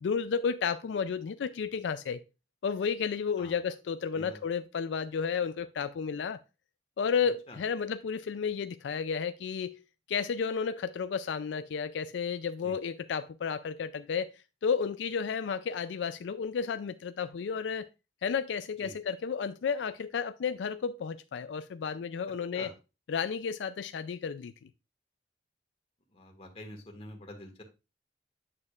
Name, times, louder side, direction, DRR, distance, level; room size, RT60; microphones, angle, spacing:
voice 1, 0.0-2.2 2.6-6.4 7.0-9.8 10.1-14.3 14.6-17.9 18.2-22.7 23.1-24.5, left 6 dB, 85° left, 0.4 m, -32 dB
voice 2, 26.1-27.6, left 1 dB, 35° left, 1.6 m, -46 dB
8.7 x 6.5 x 2.4 m
head